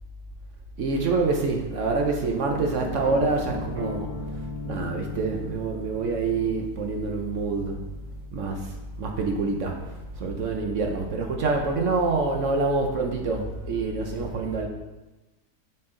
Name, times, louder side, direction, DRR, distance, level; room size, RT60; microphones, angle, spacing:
voice 1, 0.8-4.1 4.6-7.8 8.3-8.7 9.0-9.8 10.2-14.7, right 3 dB, 60° right, 2 dB, 0.9 m, -26 dB
sound 1, 2.5-10.4, left 1 dB, 35° right, 0.5 m, -39 dB
7.9 x 4.3 x 3.7 m, 1.1 s
omnidirectional pair, 1.8 m